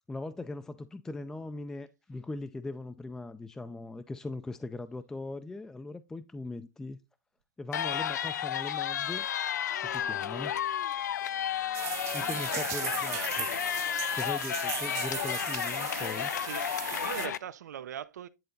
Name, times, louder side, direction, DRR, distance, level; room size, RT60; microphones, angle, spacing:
voice 1, 0.1-7.0 7.6-9.3 9.8-10.6 12.1-13.5 14.1-16.3, left 2 dB, 5° left, 0.4 m, -40 dB
sound 1, 7.7-17.4, left 10 dB, 80° left, 0.6 m, -32 dB
sound 2, 11.7-17.3, right 14 dB, 30° right, 0.8 m, -38 dB
voice 2, 12.2-13.2 16.4-18.3, right 10 dB, 75° right, 0.7 m, -42 dB
10.5 x 4.1 x 3.9 m
hypercardioid pair, 140°, 9 cm